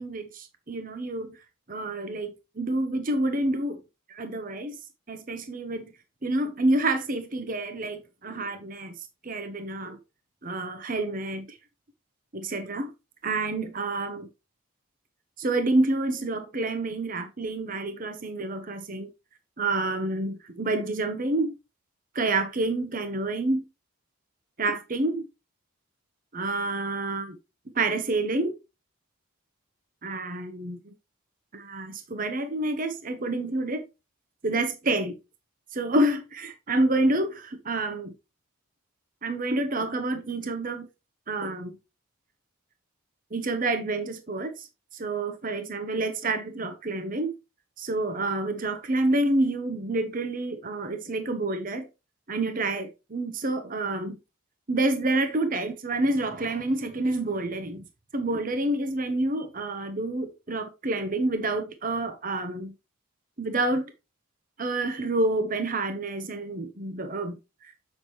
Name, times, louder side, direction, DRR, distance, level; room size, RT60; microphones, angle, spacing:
voice 1, 0.0-1.4 1.7-3.8 4.1-4.8 5.1-5.9 6.2-8.9 9.2-10.0 10.4-11.6 12.3-12.9 13.2-14.3 15.4-19.1 19.6-21.5 22.1-23.6 24.6-25.3 26.3-27.4 27.7-28.5 30.0-30.9 31.5-33.8 34.4-35.2 35.7-38.1 39.2-40.9 41.3-41.8 43.3-44.7 44.9-47.3 47.8-51.9 52.3-54.2 54.7-57.8 58.1-62.7 63.4-63.9 64.6-67.7, right 2 dB, 40° right, 0.9 m, -28 dB
7.4 x 6.0 x 3.1 m
head